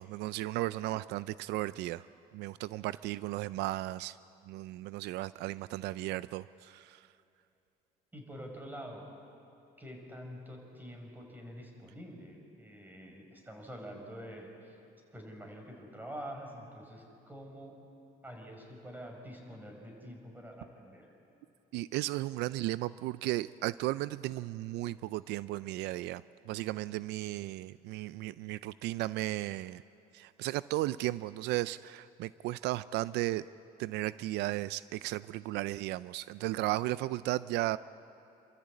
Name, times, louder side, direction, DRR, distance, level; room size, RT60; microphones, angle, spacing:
voice 1, 0.0-2.0 2.3-4.2 4.5-7.0 21.7-29.8 30.1-33.4 33.8-37.8, right 17 dB, 85° right, 17 dB, 0.4 m, -35 dB
voice 2, 8.1-9.0 9.8-14.8 15.1-17.7 18.2-21.1, equal, 10° right, 2 dB, 4.9 m, -46 dB
28.0 x 13.5 x 8.4 m, 2.8 s
cardioid pair, 110°, 17 cm